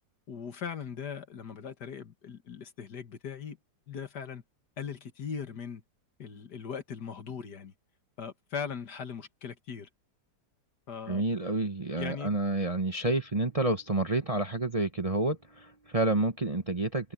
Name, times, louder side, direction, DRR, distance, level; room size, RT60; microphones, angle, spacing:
voice 1, 0.3-3.6 3.9-4.4 4.8-5.8 6.2-7.7 8.2-9.9 10.9-11.3 12.0-12.4, left 7 dB, 60° left, 2.1 m, -39 dB
voice 2, 11.1-17.1, right 2 dB, 25° right, 1.0 m, -29 dB
omnidirectional pair, 2.0 m